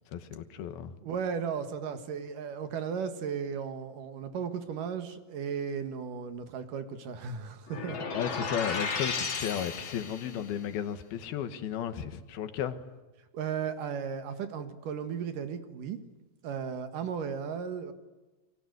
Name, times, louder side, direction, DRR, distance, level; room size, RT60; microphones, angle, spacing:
voice 1, 0.1-0.9 8.1-12.8, left 9 dB, 90° left, 10 dB, 3.4 m, -34 dB
voice 2, 1.0-8.1 8.3-8.5 10.0-10.1 13.3-16.0 16.4-17.9, right 7 dB, 65° right, 9 dB, 3.1 m, -35 dB
sound 1, 7.7-10.5, left 5 dB, 40° left, 2.5 m, -34 dB
29.5 x 23.5 x 8.1 m, 1.2 s
omnidirectional pair, 4.3 m